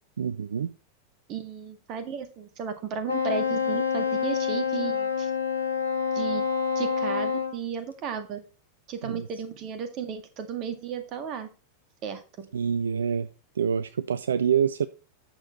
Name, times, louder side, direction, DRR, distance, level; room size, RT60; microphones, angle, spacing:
voice 1, 0.2-0.7 9.0-9.3 12.5-13.3 13.6-14.9, right 7 dB, 65° right, 0.4 m, -26 dB
voice 2, 1.3-5.3 6.1-6.5 6.8-8.4 8.9-11.5 12.0-12.5, right 7 dB, 35° right, 1.8 m, -34 dB
Wind instrument woodwind instrument, 3.1-7.6, left 6 dB, 80° left, 1.4 m, -27 dB
8.9 x 6.8 x 4.0 m
figure-of-eight pair, 90°, 0 cm